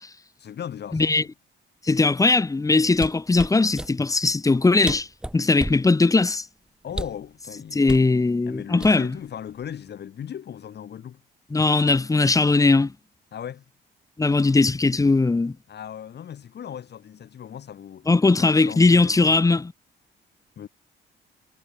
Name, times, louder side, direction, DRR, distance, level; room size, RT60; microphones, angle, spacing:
voice 1, 0.4-1.3 6.8-8.0 8.5-11.2 13.3-13.6 15.7-18.1 18.4-19.5 20.6-20.7, left 9 dB, 55° left, 2.8 m, -37 dB
voice 2, 0.9-1.2 1.8-5.1 5.3-6.4 7.7-9.1 11.5-12.9 14.2-15.6 18.1-19.7, left 3 dB, 15° left, 0.8 m, -19 dB
sound 1, 2.9-3.9 4.6-4.7 4.8-5.9 6.9-7.3 7.9-8.1 8.8-9.3 9.6-9.9, right 1 dB, 5° right, 0.4 m, -32 dB
cardioid pair, 90°, 20 cm